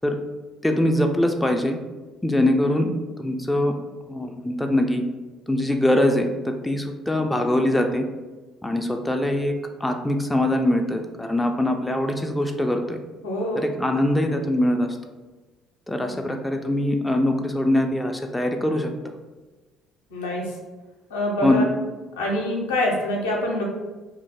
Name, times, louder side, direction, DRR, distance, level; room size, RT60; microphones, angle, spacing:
voice 1, 0.6-1.8 2.2-3.7 4.1-5.0 5.5-8.1 8.6-9.5 9.8-13.0 13.5-14.9 15.9-18.9 21.4-21.7, left 1 dB, 10° left, 4 dB, 0.3 m, -22 dB
voice 2, 13.2-13.7 16.1-16.3 20.1-20.6 21.1-21.7 22.2-23.6, left 1 dB, 85° left, -2 dB, 0.5 m, -25 dB
2.3 x 2.0 x 3.2 m, 1.2 s
hypercardioid pair, 55°, 0 cm